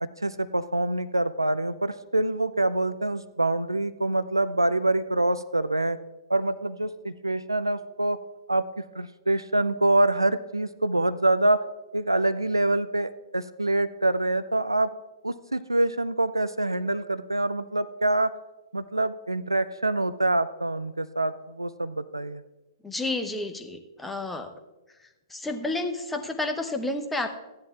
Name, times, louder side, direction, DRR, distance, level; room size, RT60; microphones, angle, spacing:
voice 1, 0.0-6.0 6.3-8.2 8.5-11.6 11.9-14.9 15.2-18.3 18.7-22.4, right 2 dB, 90° right, 13 dB, 0.4 m, -25 dB
voice 2, 22.8-24.5 25.0-27.3, left 2 dB, 5° left, 6 dB, 0.8 m, -31 dB
14.5 x 10.5 x 2.4 m, 1.1 s
figure-of-eight pair, 115°, 2 cm